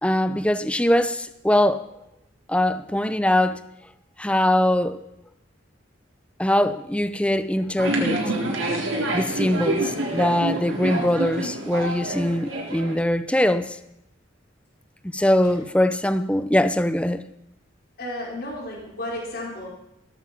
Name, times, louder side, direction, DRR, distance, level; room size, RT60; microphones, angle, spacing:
voice 1, 0.0-1.9 2.5-3.6 4.2-5.0 6.4-8.2 9.1-13.8 15.1-17.2, left 1 dB, 5° left, 0.6 m, -22 dB
sound 1, 7.8-13.0, right 2 dB, 80° right, 3.8 m, -27 dB
voice 2, 18.0-19.7, left 1 dB, 50° left, 4.7 m, -33 dB
17.0 x 14.0 x 5.9 m
head